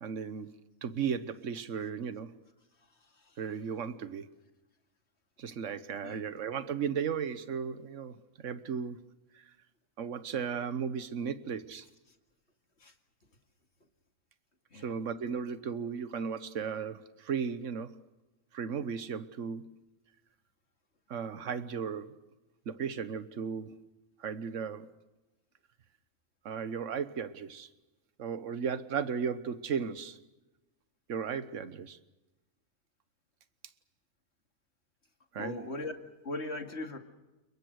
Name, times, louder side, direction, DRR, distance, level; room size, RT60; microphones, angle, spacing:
voice 1, 0.0-2.3 3.4-4.3 5.4-9.0 9.3-9.4 10.0-11.9 14.8-18.0 18.5-19.8 21.1-22.2 22.7-23.8 24.2-24.9 26.4-27.7 28.2-30.2 31.1-32.0 35.3-35.6, right 7 dB, 60° right, 1.5 m, -35 dB
voice 2, 35.4-35.9 36.2-37.0, left 2 dB, 50° left, 2.5 m, -39 dB
30.0 x 22.0 x 6.5 m
omnidirectional pair, 1.5 m